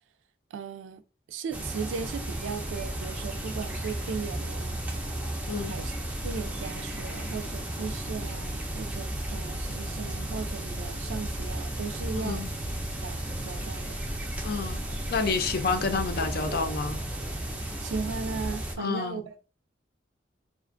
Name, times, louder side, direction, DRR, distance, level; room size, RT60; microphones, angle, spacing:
voice 1, 0.5-1.0 1.3-4.8 5.7-5.9 6.2-12.5 13.0-14.0 17.8-19.4, right 5 dB, 85° right, 0.3 m, -37 dB
sound 1, 1.5-18.8, right 1 dB, 10° right, 0.4 m, -34 dB
voice 2, 14.4-14.8 15.1-17.0 18.8-19.2, left 4 dB, 55° left, 0.4 m, -29 dB
2.4 x 2.2 x 2.5 m
head